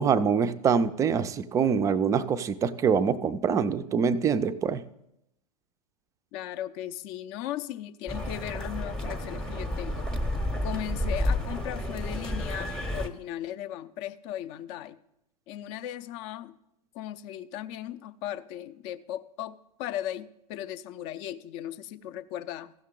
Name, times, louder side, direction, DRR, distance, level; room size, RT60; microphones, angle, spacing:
voice 1, 0.0-4.8, right 6 dB, 15° right, 12 dB, 0.4 m, -25 dB
voice 2, 6.3-10.1 10.6-15.0 15.5-16.5 16.9-22.7, left 12 dB, 40° left, 14 dB, 0.5 m, -37 dB
sound 1, 8.1-13.1, left 1 dB, 5° left, 0.8 m, -31 dB
15.0 x 6.4 x 3.8 m, 0.82 s
figure-of-eight pair, 95°, 20 cm